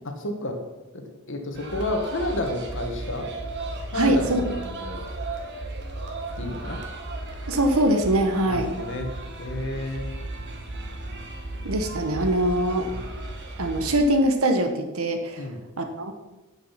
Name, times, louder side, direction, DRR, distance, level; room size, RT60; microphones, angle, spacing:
voice 1, 0.0-0.6 0.9-3.3 3.9-5.0 6.4-6.8 8.4-9.1 9.4-10.2 12.9-13.1 15.4-15.6, left 1 dB, 60° left, 4 dB, 1.6 m, -31 dB
sound 1, 1.5-14.0, right 2 dB, 55° right, 1.6 m, -35 dB
voice 2, 3.9-4.5 7.5-8.7 11.6-12.9 13.6-15.4 15.8-16.1, right 1 dB, 70° right, 6 dB, 1.3 m, -23 dB
9.1 x 7.8 x 5.8 m, 1.1 s
head